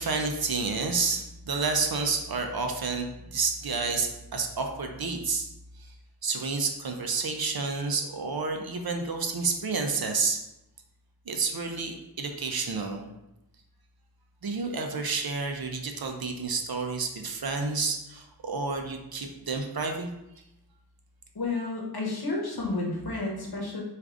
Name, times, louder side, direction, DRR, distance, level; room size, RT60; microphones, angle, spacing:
voice 1, 0.0-5.5 5.8-5.9 6.2-10.4 11.3-13.0 14.4-20.1, right 4 dB, 60° right, 4 dB, 0.5 m, -30 dB
voice 2, 21.3-23.8, left 3 dB, 60° left, -2 dB, 0.9 m, -31 dB
4.5 x 2.5 x 2.5 m, 0.90 s
wide cardioid pair, 50°, 42 cm